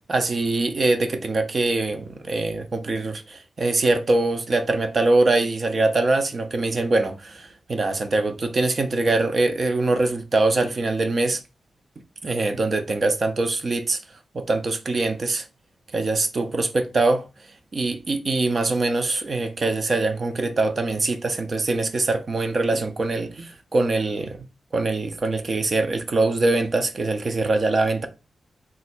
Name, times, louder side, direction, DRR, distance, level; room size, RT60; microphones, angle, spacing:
voice 1, 0.1-11.4 12.2-14.0 14.3-15.4 15.9-17.2 17.7-24.5 24.7-28.1, right 2 dB, 45° right, 0.6 m, -23 dB
3.6 x 2.2 x 4.3 m
wide cardioid pair, 110°, 0 cm